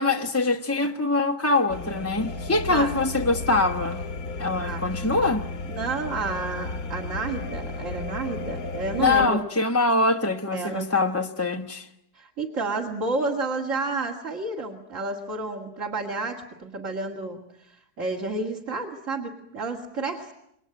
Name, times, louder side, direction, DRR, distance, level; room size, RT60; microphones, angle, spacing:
voice 1, 0.0-4.0 4.4-5.4 9.0-11.9, left 3 dB, 10° left, 0.9 m, -23 dB
sound 1, 1.7-9.3, left 3 dB, 60° left, 1.7 m, -34 dB
voice 2, 4.6-4.9 5.7-9.4 10.5-10.9 12.1-17.4 18.0-20.3, right 3 dB, 50° right, 2.6 m, -30 dB
28.5 x 22.0 x 9.0 m
omnidirectional pair, 1.8 m